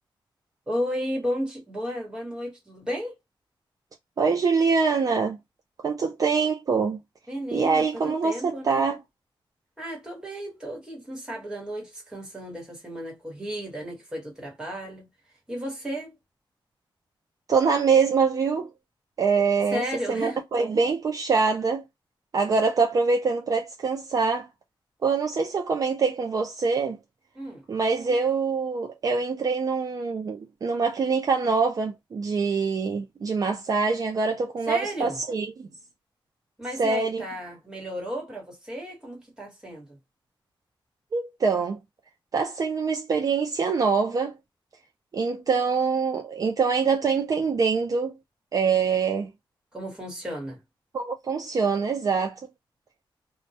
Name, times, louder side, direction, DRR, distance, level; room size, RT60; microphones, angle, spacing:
voice 1, 0.7-3.2 7.3-8.9 9.8-15.1 15.5-16.1 19.7-20.4 27.3-27.6 34.6-35.2 36.6-40.0 49.7-50.6, equal, 10° right, 1.1 m, -33 dB
voice 2, 4.2-5.4 5.8-7.0 7.5-9.0 17.5-18.7 19.2-19.8 20.1-21.8 22.3-24.5 25.0-27.0 27.7-35.5 36.8-37.2 41.1-41.8 42.3-44.3 45.1-48.1 48.5-49.3 50.9-52.4, right 5 dB, 45° right, 0.4 m, -24 dB
2.1 x 2.1 x 2.7 m
wide cardioid pair, 175°, 9 cm